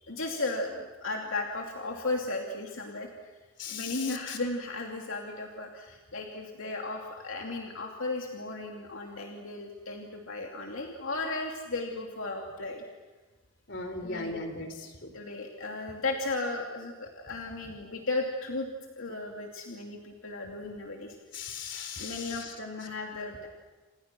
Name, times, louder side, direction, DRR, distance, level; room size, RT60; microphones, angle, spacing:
voice 1, 0.0-3.3 3.7-12.8 14.0-14.4 15.1-18.7 18.9-21.2 22.0-23.5, left 2 dB, 75° left, 1 dB, 2.8 m, -35 dB
voice 2, 3.6-4.4 13.7-15.1 21.3-22.5, left 4 dB, 55° left, 7 dB, 4.1 m, -38 dB
29.5 x 27.5 x 6.2 m, 1.3 s
head